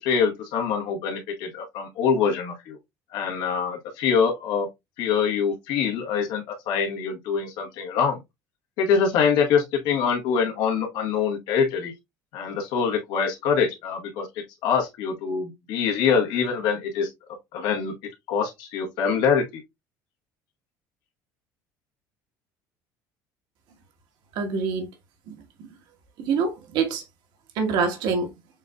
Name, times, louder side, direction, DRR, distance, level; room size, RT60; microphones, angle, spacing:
voice 1, 0.0-2.8 3.1-4.7 5.0-8.2 8.8-11.9 12.3-17.1 17.5-17.9 18.3-19.6, left 6 dB, 75° left, 1.6 m, -24 dB
voice 2, 24.3-24.9 25.3-25.4 26.2-27.0 27.5-28.3, right 5 dB, 70° right, 1.3 m, -25 dB
7.2 x 2.6 x 2.3 m
cardioid pair, 110°, 8 cm